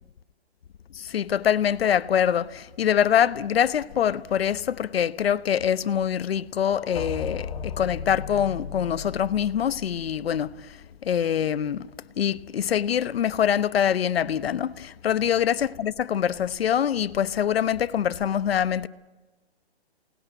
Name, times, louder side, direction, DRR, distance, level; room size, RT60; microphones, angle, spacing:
voice 1, 0.9-11.9 12.2-18.9, left 9 dB, 65° left, 1.0 m, -24 dB
sound 1, 6.6-10.6, left 6 dB, 45° left, 2.7 m, -36 dB
28.0 x 19.0 x 9.1 m
hypercardioid pair, 155°, 33 cm